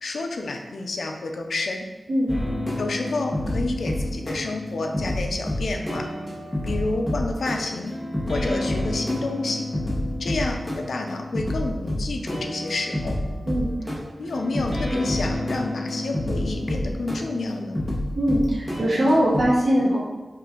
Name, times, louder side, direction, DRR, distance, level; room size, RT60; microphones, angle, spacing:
voice 1, 0.0-1.9 2.8-6.0 6.6-7.9 8.3-9.6 10.2-13.1 14.2-17.8, left 2 dB, 85° left, 3 dB, 0.5 m, -29 dB
sound 1, 2.3-19.4, left 1 dB, 15° left, 1.2 m, -28 dB
voice 2, 18.1-20.0, equal, 80° right, -7 dB, 1.2 m, -21 dB
5.6 x 2.5 x 3.7 m, 1.2 s
wide cardioid pair, 80°, 0 cm